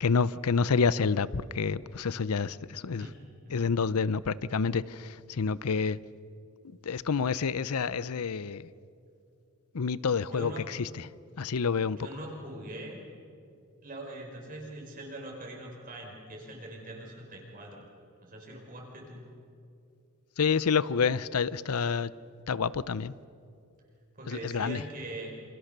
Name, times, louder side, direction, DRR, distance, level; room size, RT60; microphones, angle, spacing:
voice 1, 0.0-3.1 3.5-6.0 6.8-8.7 9.7-10.5 10.8-10.9 11.4-12.0 20.4-22.1 22.5-23.1 24.3-24.8, left 5 dB, 85° left, 0.6 m, -28 dB
voice 2, 10.2-10.7 11.3-11.4 11.9-13.0 13.8-17.9 18.2-19.3 24.1-25.3, right 1 dB, 40° right, 4.7 m, -42 dB
28.0 x 26.5 x 6.7 m
head